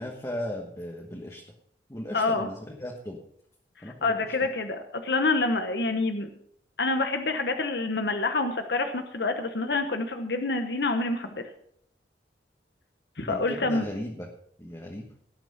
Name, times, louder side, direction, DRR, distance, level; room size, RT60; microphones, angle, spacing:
voice 1, 0.0-1.4 1.9-3.2 3.8-4.3 13.2-14.3 14.6-15.1, left 1 dB, 15° left, 0 dB, 1.3 m, -36 dB
voice 2, 2.1-2.5 4.0-6.3 6.8-11.4 13.2-13.8, left 3 dB, 65° left, 6 dB, 1.0 m, -27 dB
17.5 x 6.0 x 5.7 m, 0.69 s
head